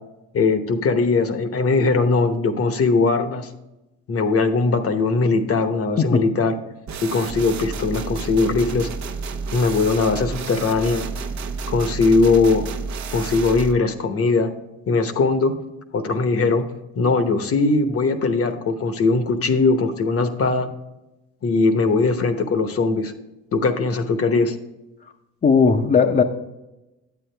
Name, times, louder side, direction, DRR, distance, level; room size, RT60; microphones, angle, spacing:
voice 1, 0.3-3.5 4.1-6.6 7.0-8.9 9.5-11.1 11.7-12.6 13.1-14.5 14.9-15.5 15.9-16.7 17.0-20.7 21.4-23.1 23.5-24.6, left 3 dB, 50° left, 8 dB, 1.0 m, -20 dB
sound 1, 6.9-13.7, right 5 dB, 65° right, 0.8 m, -30 dB
voice 2, 25.4-26.2, left 5 dB, 30° left, 2 dB, 0.7 m, -16 dB
9.3 x 8.5 x 3.4 m, 0.98 s
cardioid pair, 90°, 30 cm